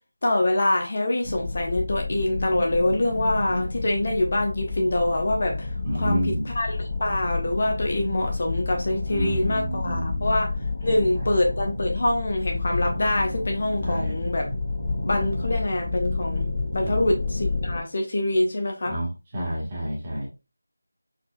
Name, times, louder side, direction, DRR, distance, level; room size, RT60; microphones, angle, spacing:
voice 1, 0.2-5.7 5.9-10.5 10.8-14.5 15.0-19.0, left 1 dB, 40° left, 1.0 m, -25 dB
sound 1, 1.2-17.8, left 3 dB, 20° left, 1.7 m, -30 dB
voice 2, 5.8-6.5 9.1-10.3 10.8-11.0 13.8-14.2 16.8-17.1 18.9-19.1 19.3-20.3, equal, 20° right, 1.3 m, -29 dB
4.1 x 4.0 x 2.2 m
figure-of-eight pair, 165°, 0 cm